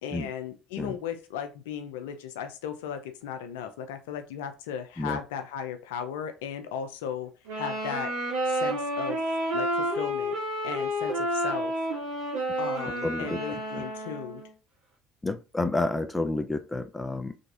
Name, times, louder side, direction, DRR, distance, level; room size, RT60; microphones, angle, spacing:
voice 1, 0.0-8.1 8.5-9.2 9.5-10.3 10.6-11.7 12.6-14.4, left 8 dB, 85° left, 0.5 m, -36 dB
sound 1, 7.4-14.5, equal, 85° right, 2.0 m, -30 dB
voice 2, 12.8-13.4 13.7-13.8 15.2-17.4, left 2 dB, 15° left, 0.5 m, -30 dB
3.9 x 3.4 x 2.5 m
hypercardioid pair, 70°, 0 cm